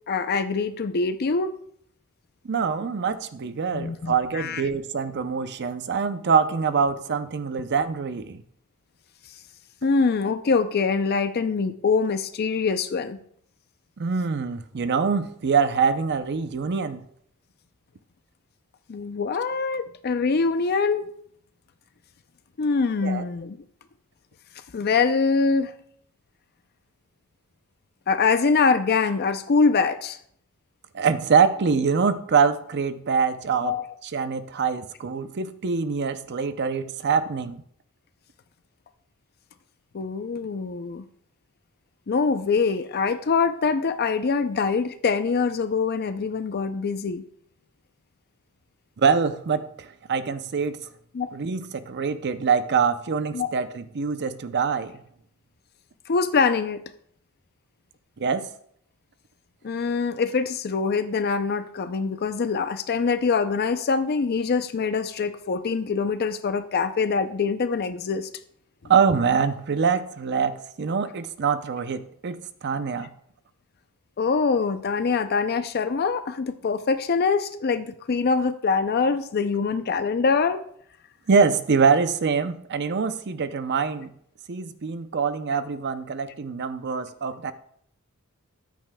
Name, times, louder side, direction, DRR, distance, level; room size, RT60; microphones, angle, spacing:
voice 1, 0.1-1.5 3.7-4.6 9.8-13.2 18.9-21.1 22.6-23.6 24.7-25.7 28.1-30.2 33.6-33.8 39.9-41.0 42.1-47.2 51.1-51.4 53.3-53.5 56.1-56.8 59.6-68.3 74.2-80.6, left 4 dB, 45° left, 10 dB, 0.5 m, -24 dB
voice 2, 2.4-8.4 14.0-17.0 23.0-23.2 30.9-33.7 34.0-37.6 49.0-50.8 51.3-55.0 58.2-58.5 68.9-73.1 81.3-84.1 84.5-87.5, right 5 dB, 50° right, 12 dB, 0.6 m, -24 dB
13.5 x 9.2 x 2.2 m, 0.67 s
head